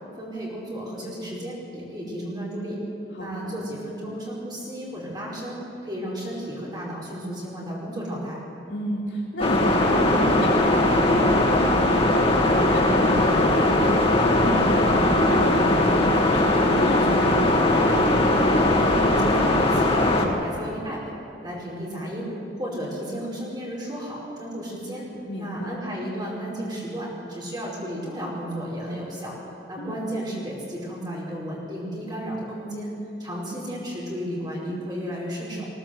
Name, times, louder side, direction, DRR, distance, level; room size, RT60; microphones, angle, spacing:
voice 1, 0.2-2.8 3.2-8.4 18.3-21.1 21.4-25.1 25.4-29.4 29.7-35.7, equal, 25° right, -5 dB, 5.0 m, -33 dB
voice 2, 3.1-3.6 8.7-17.7 25.1-25.8 29.8-30.0, equal, 80° left, -8 dB, 3.3 m, -31 dB
sound 1, 9.4-20.3, left 1 dB, 35° left, 1.9 m, -20 dB
20.5 x 17.0 x 7.9 m, 2.8 s
head